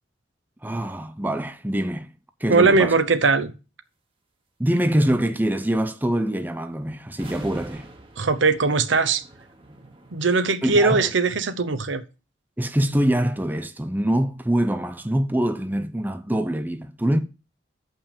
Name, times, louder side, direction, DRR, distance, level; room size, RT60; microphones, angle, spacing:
voice 1, 0.6-2.1 2.4-2.9 4.6-7.9 10.6-11.1 12.6-17.2, right 1 dB, 10° right, 0.6 m, -24 dB
voice 2, 2.5-3.5 8.2-9.2 10.1-12.0, right 4 dB, 75° right, 0.9 m, -20 dB
sound 1, 7.1-10.4, right 2 dB, 30° right, 1.3 m, -44 dB
7.1 x 5.6 x 7.0 m
head